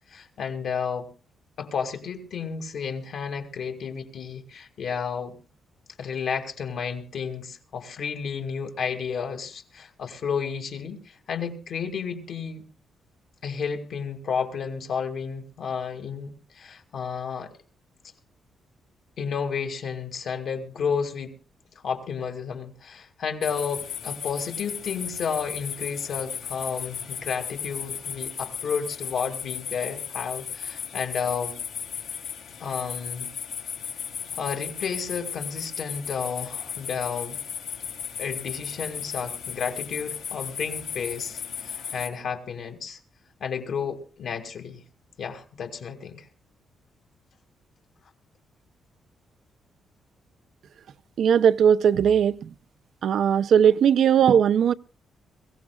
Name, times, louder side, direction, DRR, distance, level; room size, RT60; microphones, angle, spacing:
voice 1, 0.1-1.1 1.6-5.4 6.0-12.7 13.4-17.5 19.2-21.3 21.8-31.6 32.6-33.3 34.3-37.4 38.2-43.0 43.4-44.8 45.2-46.3, left 6 dB, 55° left, 2.3 m, -32 dB
sound 1, 23.4-42.1, left 8 dB, 75° left, 3.3 m, -35 dB
voice 2, 51.2-52.5 53.0-54.7, right 8 dB, 60° right, 0.6 m, -19 dB
23.0 x 16.0 x 2.3 m
wide cardioid pair, 165°, 0 cm